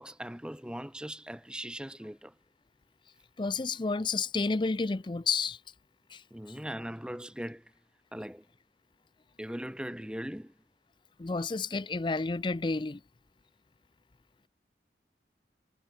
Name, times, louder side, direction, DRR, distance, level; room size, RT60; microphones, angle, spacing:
voice 1, 0.0-2.3 6.3-7.7 8.1-8.4 9.4-10.5, equal, 5° right, 1.7 m, -40 dB
voice 2, 3.4-5.6 6.1-6.2 11.2-13.0, left 4 dB, 25° left, 0.5 m, -30 dB
head